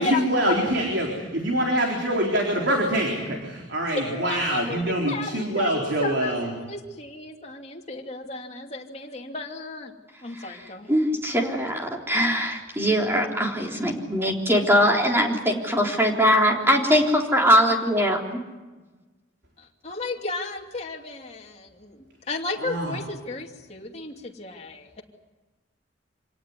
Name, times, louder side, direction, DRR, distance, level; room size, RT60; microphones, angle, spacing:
voice 1, 0.0-6.5 22.6-23.0, right 1 dB, 70° right, 0 dB, 4.2 m, -25 dB
voice 2, 4.0-6.3 6.7-9.9 10.2-10.9 19.6-25.0, left 3 dB, 35° left, 1 dB, 2.8 m, -33 dB
voice 3, 10.3-18.2, equal, 15° right, 1 dB, 3.7 m, -22 dB
26.5 x 18.0 x 9.7 m, 1.2 s
head